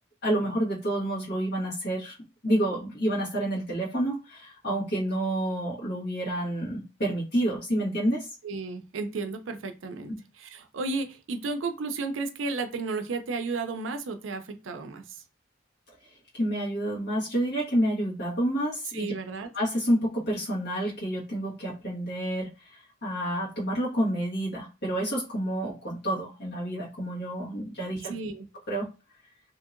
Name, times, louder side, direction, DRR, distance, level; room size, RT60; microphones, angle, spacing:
voice 1, 0.2-2.2 2.4-8.3 16.3-19.1 19.5-22.5 23.0-28.1 28.7-28.9, right 1 dB, 60° left, -5 dB, 1.4 m, -29 dB
voice 2, 8.4-10.1 10.4-15.2 18.9-19.5 28.0-28.5, right 3 dB, 85° right, 8 dB, 0.5 m, -33 dB
2.8 x 2.7 x 2.5 m, 0.30 s
head